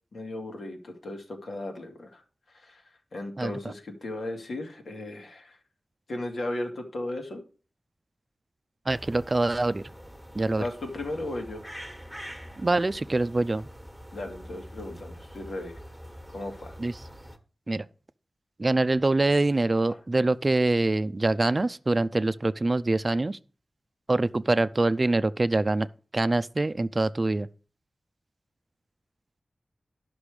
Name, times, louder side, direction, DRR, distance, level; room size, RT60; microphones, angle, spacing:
voice 1, 0.1-2.2 2.6-2.8 3.1-5.6 6.1-7.4 10.5-11.6 14.1-15.7 16.3-16.7, left 1 dB, 85° left, 2.2 m, -36 dB
voice 2, 3.4-3.7 8.9-9.8 10.3-10.7 12.6-13.7 16.8-16.9 17.7-17.8 18.6-23.4 24.1-25.9 26.1-27.5, right 2 dB, 35° right, 0.4 m, -24 dB
sound 1, 8.9-17.4, equal, ahead, 1.4 m, -45 dB
12.0 x 6.1 x 4.9 m
wide cardioid pair, 85°, 0 cm